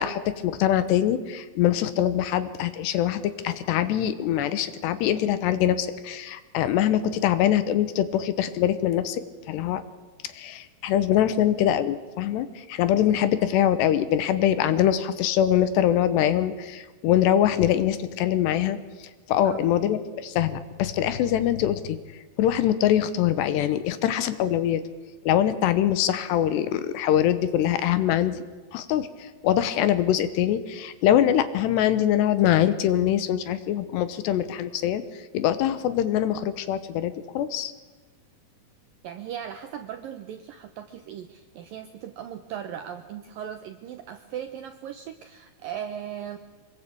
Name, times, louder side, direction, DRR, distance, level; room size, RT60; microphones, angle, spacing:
voice 1, 0.0-9.2 9.5-9.8 10.4-18.8 19.3-22.0 22.4-24.8 25.3-28.4 28.7-35.0 35.3-37.7, left 11 dB, 75° left, 12 dB, 3.0 m, -23 dB
voice 2, 39.0-46.4, right 9 dB, 75° right, 8 dB, 2.1 m, -38 dB
25.0 x 21.5 x 8.5 m, 1.2 s
omnidirectional pair, 5.3 m